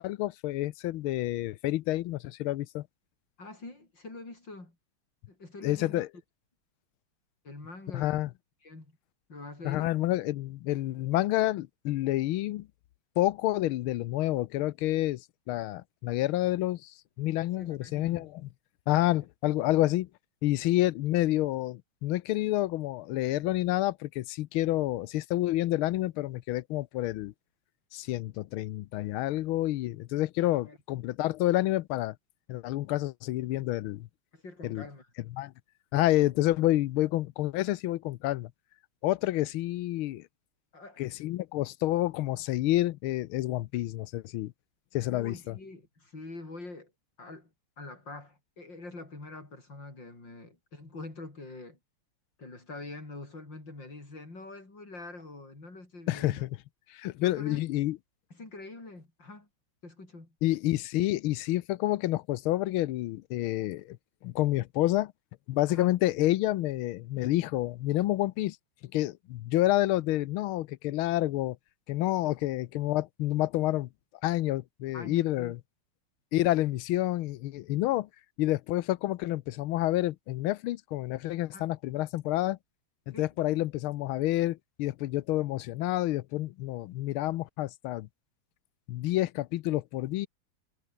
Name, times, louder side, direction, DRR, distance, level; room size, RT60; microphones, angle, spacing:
voice 1, 0.0-2.9 5.6-6.1 7.9-8.3 9.6-12.7 13.2-15.2 15.5-18.5 18.9-20.1 20.4-27.3 27.9-32.1 32.5-34.1 34.6-34.9 35.3-35.5 35.9-38.5 39.0-40.3 41.0-44.5 44.9-45.6 56.1-56.6 56.9-58.0 60.4-64.0 64.2-65.1 65.5-68.6 68.9-71.6 71.9-73.9 74.2-75.6 76.3-78.1 78.4-82.6 83.1-88.1 88.9-90.3, left 16 dB, 90° left, 1.6 m, -29 dB
voice 2, 3.4-4.8 5.3-6.1 7.4-8.2 8.6-8.9 9.3-10.0 17.6-18.3 19.2-19.3 30.4-30.8 34.3-35.1 40.7-41.0 45.1-46.9 47.2-47.5 47.8-51.8 52.4-56.5 57.2-57.6 58.3-59.5 59.8-60.3 65.7-65.9 74.9-75.5 81.5-81.7 83.1-83.3, left 2 dB, 60° left, 7.3 m, -45 dB
omnidirectional pair, 2.2 m